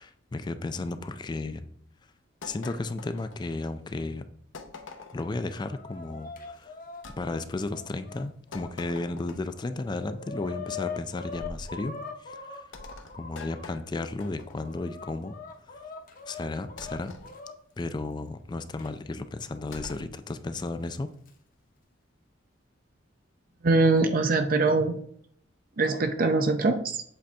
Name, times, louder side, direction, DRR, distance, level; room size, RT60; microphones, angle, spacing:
voice 1, 0.0-1.6 2.4-4.3 5.1-6.7 7.2-12.6 13.2-15.4 15.7-15.8 16.3-17.1 17.8-21.1, left 2 dB, 20° left, 10 dB, 0.3 m, -34 dB
sound 1, 2.4-3.8 4.5-5.4 7.0-7.2 8.5-9.6 11.3-11.7 12.7-14.8 16.8-17.3 19.7-20.1, left 3 dB, 80° left, 0.8 m, -45 dB
Chicken rooster, 5.2-8.7 9.3-9.4 9.6-13.7 14.3-17.5 18.8-18.9 19.9-20.0 21.0-21.3, left 5 dB, 45° left, 0.8 m, -42 dB
voice 2, 23.6-25.0 25.8-27.0, right 3 dB, 45° right, 7 dB, 0.6 m, -23 dB
7.6 x 3.4 x 4.2 m, 0.64 s
head